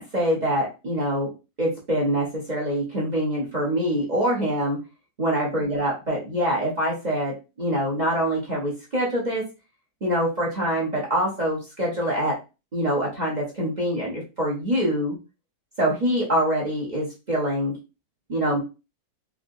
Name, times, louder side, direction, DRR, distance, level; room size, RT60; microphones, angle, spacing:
voice 1, 0.0-1.3 1.6-4.8 5.2-9.5 10.0-12.4 12.7-15.1 15.8-17.8 18.3-18.6, equal, 40° right, -4 dB, 0.6 m, -25 dB
3.5 x 2.7 x 2.6 m, 0.29 s
omnidirectional pair, 1.9 m